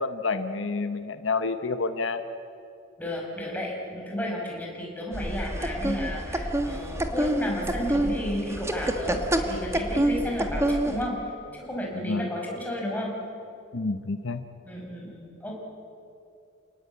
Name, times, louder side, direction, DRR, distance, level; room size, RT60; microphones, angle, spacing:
voice 1, 0.0-2.2 11.9-12.3 13.7-14.4, left 3 dB, 70° left, 9 dB, 1.0 m, -29 dB
voice 2, 3.0-11.2 11.5-13.1 14.7-15.5, equal, 10° left, -2 dB, 5.4 m, -33 dB
sound 1, 5.1-11.1, right 1 dB, 15° right, 1.5 m, -27 dB
28.5 x 19.0 x 8.5 m, 2.6 s
head